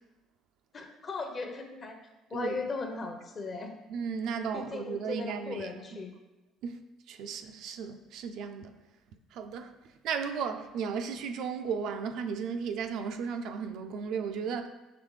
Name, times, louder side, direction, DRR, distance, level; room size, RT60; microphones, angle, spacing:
voice 1, 0.7-2.0 2.3-3.7 4.5-6.1, left 3 dB, 40° left, 0.7 m, -37 dB
voice 2, 3.9-6.0 6.6-6.8 7.1-8.7 9.3-9.7 10.0-14.7, right 6 dB, 70° right, 0.3 m, -35 dB
5.0 x 3.1 x 3.1 m
hypercardioid pair, 65°, 0 cm